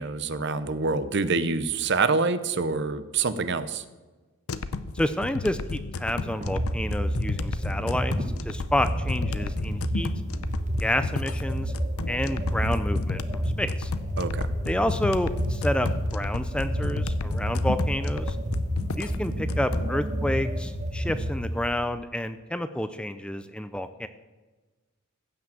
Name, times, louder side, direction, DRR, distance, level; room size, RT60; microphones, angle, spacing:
voice 1, 0.0-3.8 14.2-14.5, right 4 dB, 55° right, 13 dB, 0.7 m, -26 dB
sound 1, 4.5-19.9, left 3 dB, 90° left, 0.7 m, -34 dB
voice 2, 4.9-8.1 8.5-10.1 10.8-11.7 12.1-13.9 14.7-18.4 19.0-24.1, left 1 dB, 5° left, 11 dB, 0.4 m, -29 dB
sound 2, 6.2-21.8, equal, 35° right, 1.5 m, -30 dB
15.5 x 6.0 x 7.6 m, 1.2 s
head